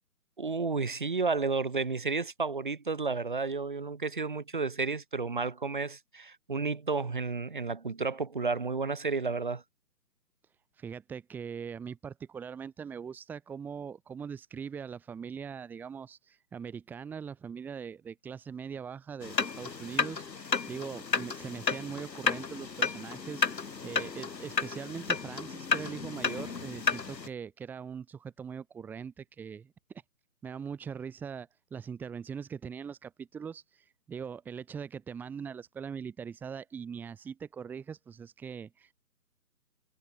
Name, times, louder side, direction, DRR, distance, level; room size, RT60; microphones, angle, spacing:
voice 1, 0.4-9.6, right 4 dB, 30° right, 1.2 m, -32 dB
voice 2, 10.8-29.7 30.4-38.9, right 6 dB, 5° right, 5.1 m, -41 dB
sound 1, 19.2-27.3, left 5 dB, 85° left, 2.3 m, -32 dB
hypercardioid pair, 170°, 49 cm